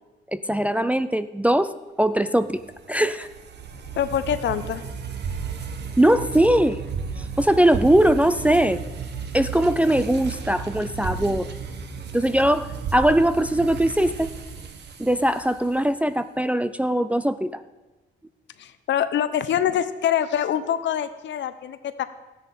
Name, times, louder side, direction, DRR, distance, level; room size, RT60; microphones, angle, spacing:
voice 1, 0.3-1.7 2.0-2.6 2.9-3.3 6.0-6.8 7.2-8.8 9.3-11.5 12.1-14.3 15.0-17.6, right 1 dB, 5° right, 11 dB, 0.4 m, -20 dB
sound 1, 2.5-15.9, right 6 dB, 60° right, 1.2 m, -34 dB
voice 2, 4.0-4.8 18.6-22.0, left 9 dB, 65° left, 12 dB, 0.8 m, -25 dB
13.5 x 10.0 x 4.3 m, 1.1 s
cardioid pair, 90°, 20 cm